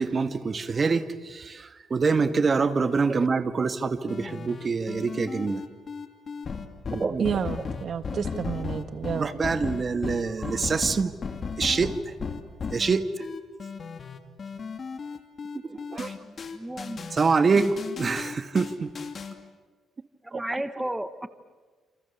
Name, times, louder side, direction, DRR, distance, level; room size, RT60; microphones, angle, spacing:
voice 1, 0.0-5.6 6.9-7.3 9.1-11.1 11.6-12.1 12.7-13.2 15.6-16.1 17.1-18.9 20.3-20.4, right 4 dB, 35° right, 1.7 m, -25 dB
sound 1, 4.1-19.3, left 5 dB, 45° left, 2.6 m, -35 dB
voice 2, 7.2-9.3, right 7 dB, 55° right, 1.5 m, -30 dB
voice 3, 16.2-17.1 17.5-17.7 20.2-21.3, right 1 dB, 10° right, 1.2 m, -34 dB
28.0 x 27.5 x 7.2 m
cardioid pair, 90°, 0 cm